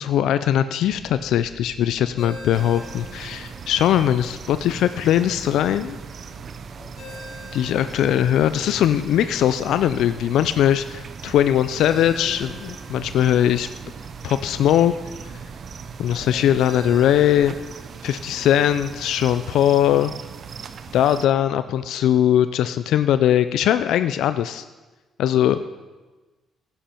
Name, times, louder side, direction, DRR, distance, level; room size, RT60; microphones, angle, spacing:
voice 1, 0.0-6.0 7.5-12.5 12.9-13.7 14.2-14.9 16.0-17.6 18.0-20.1 20.9-24.6 25.2-25.6, left 11 dB, 80° left, 12 dB, 0.3 m, -20 dB
sound 1, 0.8-17.7, right 4 dB, 35° right, 1.3 m, -45 dB
Ringtone, 2.2-21.3, left 2 dB, 50° left, 3.9 m, -47 dB
sound 2, 2.5-21.3, right 6 dB, 55° right, 0.6 m, -39 dB
voice 2, 6.7-7.0 10.3-10.4 11.9-12.5 16.2-16.5 25.4-25.8, left 1 dB, 15° left, -1 dB, 2.9 m, -46 dB
10.5 x 10.0 x 4.4 m, 1.2 s
cardioid pair, 90°, 0 cm